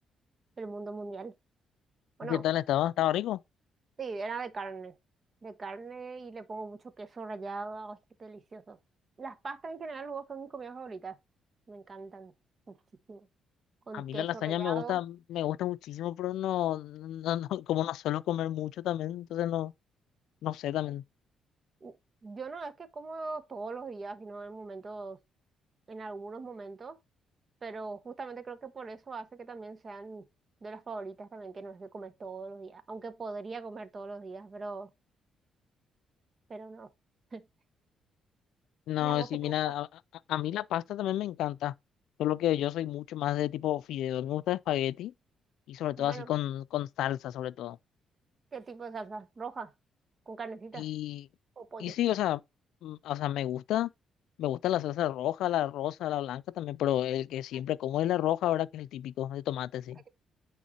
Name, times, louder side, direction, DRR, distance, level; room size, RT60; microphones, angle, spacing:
voice 1, 0.6-1.3 2.2-2.4 4.0-5.0 5.4-8.8 9.2-11.2 11.7-12.3 12.7-12.8 13.1-13.3 13.9-15.0 21.8-21.9 22.2-25.2 25.9-27.0 27.6-30.3 30.6-34.9 36.5-36.9 37.3-37.5 39.0-39.7 46.0-46.3 48.5-49.7 50.3-50.9 51.6-52.0 57.5-57.6, right 4 dB, 40° right, 1.0 m, -41 dB
voice 2, 2.2-3.4 13.9-19.7 20.4-21.0 38.9-39.9 40.3-41.7 42.2-45.1 45.7-47.8 50.8-51.2 51.8-52.4 52.8-53.9 54.4-60.0, left 13 dB, 85° left, 0.3 m, -31 dB
9.3 x 3.7 x 4.2 m
cardioid pair, 90°, 0 cm